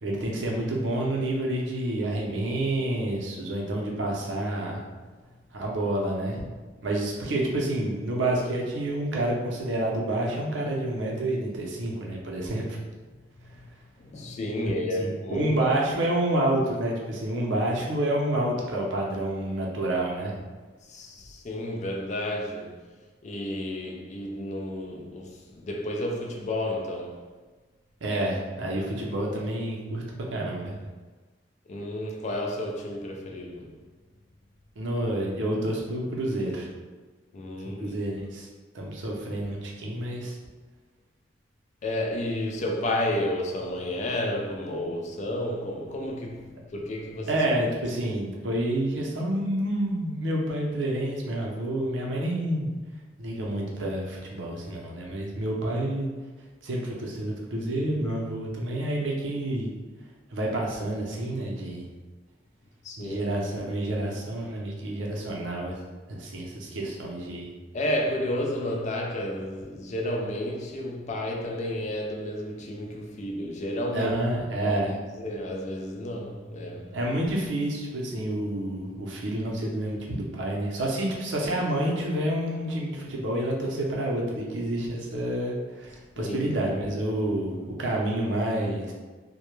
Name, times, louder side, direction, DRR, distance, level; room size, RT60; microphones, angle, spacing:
voice 1, 0.0-4.8 5.5-6.4 6.8-12.8 14.6-20.4 28.0-30.0 30.3-30.8 34.8-36.7 37.8-38.5 38.7-40.4 47.3-52.7 53.2-56.1 56.6-59.7 60.3-61.8 63.0-65.8 66.1-67.5 73.9-75.0 76.9-88.9, right 1 dB, 90° right, 0.5 m, -29 dB
voice 2, 14.0-15.8 20.8-22.8 23.2-27.2 31.7-33.7 37.3-38.0 41.8-47.4 47.8-48.0 62.8-63.3 67.7-74.2 74.6-74.7 75.1-77.0 86.2-86.6, left 1 dB, 40° left, 0.3 m, -31 dB
2.1 x 2.1 x 3.0 m
head